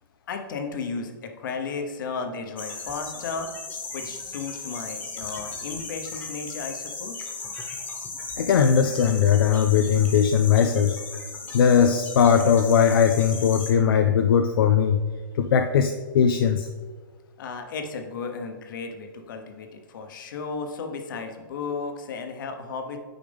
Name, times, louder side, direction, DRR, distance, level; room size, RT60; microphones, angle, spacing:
voice 1, 0.3-3.5 3.9-7.3 17.4-23.0, left 4 dB, 60° left, 5 dB, 1.1 m, -34 dB
sound 1, 2.6-13.7, left 4 dB, 15° left, 1.2 m, -37 dB
voice 2, 8.4-11.0 11.5-15.0 15.3-16.7, left 7 dB, 80° left, 6 dB, 0.5 m, -19 dB
8.8 x 5.0 x 3.5 m, 1.5 s
hypercardioid pair, 150°, 12 cm